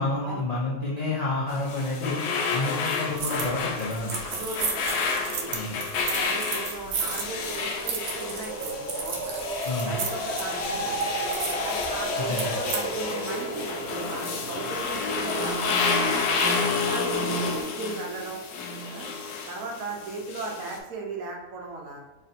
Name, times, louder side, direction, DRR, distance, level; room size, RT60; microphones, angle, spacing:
voice 1, 0.0-2.2 2.5-4.2 5.5-5.8 9.6-10.0 12.2-12.6, left 2 dB, 65° left, -6 dB, 0.4 m, -29 dB
sound 1, 1.5-20.8, left 4 dB, 90° left, 1.1 m, -30 dB
sound 2, 3.2-3.5 3.8-12.8, right 5 dB, 90° right, 1.2 m, -33 dB
voice 2, 4.2-5.5 6.1-9.4 9.9-10.9 11.6-15.8 16.6-18.4 18.9-19.1 19.5-22.0, right 3 dB, 65° right, 0 dB, 1.0 m, -37 dB
sound 3, 7.0-17.6, right 1 dB, 45° right, 1.3 m, -34 dB
3.2 x 2.5 x 4.1 m, 1.1 s
omnidirectional pair, 1.6 m